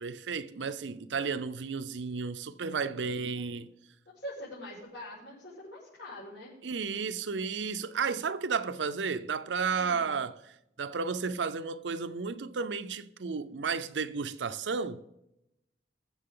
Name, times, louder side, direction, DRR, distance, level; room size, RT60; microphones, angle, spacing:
voice 1, 0.0-3.7 6.6-15.0, right 5 dB, 90° right, 0.6 m, -33 dB
voice 2, 2.9-3.6 4.1-6.5 9.7-10.2, left 1 dB, 90° left, 5.6 m, -45 dB
21.5 x 7.4 x 3.8 m
head